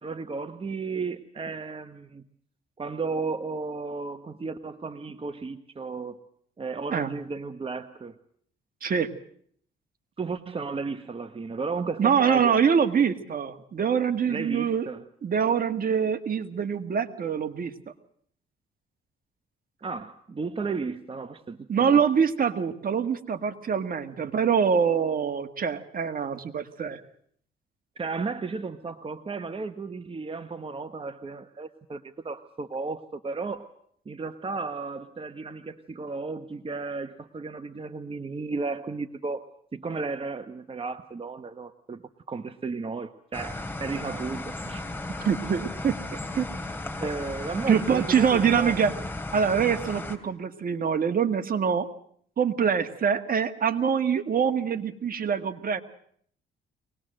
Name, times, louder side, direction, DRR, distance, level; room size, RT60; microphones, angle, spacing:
voice 1, 0.0-2.2 2.8-6.2 6.6-8.1 10.2-12.6 14.3-15.0 19.8-22.0 28.0-33.7 34.1-42.0 42.3-44.8 45.1-45.3 47.0-48.8, right 4 dB, 30° right, 8 dB, 1.1 m, -34 dB
voice 2, 12.0-14.9 15.2-17.7 21.7-27.0 45.2-46.0 46.3-46.5 47.7-48.9 49.3-51.9 52.4-55.8, right 7 dB, 45° right, 9 dB, 1.7 m, -24 dB
sound 1, 43.3-50.2, left 2 dB, 10° left, 2.8 m, -35 dB
23.5 x 19.5 x 7.7 m, 0.64 s
cardioid pair, 90°, 20 cm